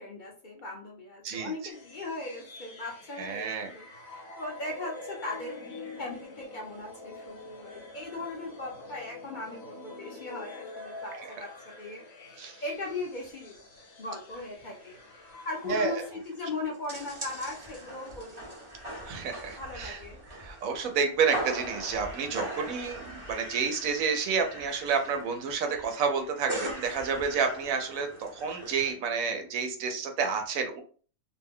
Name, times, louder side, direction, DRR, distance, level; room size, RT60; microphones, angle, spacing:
voice 1, 0.0-5.6 6.0-13.5 14.0-15.0 15.4-18.5 19.6-20.2, left 2 dB, 45° left, -2 dB, 0.8 m, -38 dB
sound 1, 1.7-16.1, left 2 dB, 75° left, 1.2 m, -46 dB
voice 2, 3.2-3.7 11.4-11.5 12.4-12.6 15.7-16.1 19.0-20.0 20.3-30.8, right 5 dB, 90° right, 5 dB, 1.1 m, -30 dB
sound 2, 12.8-13.0 13.2-13.3 13.8-14.1 14.4-14.5 14.7-28.9, right 1 dB, 25° right, 0.8 m, -41 dB
2.8 x 2.2 x 3.5 m, 0.41 s
omnidirectional pair, 1.4 m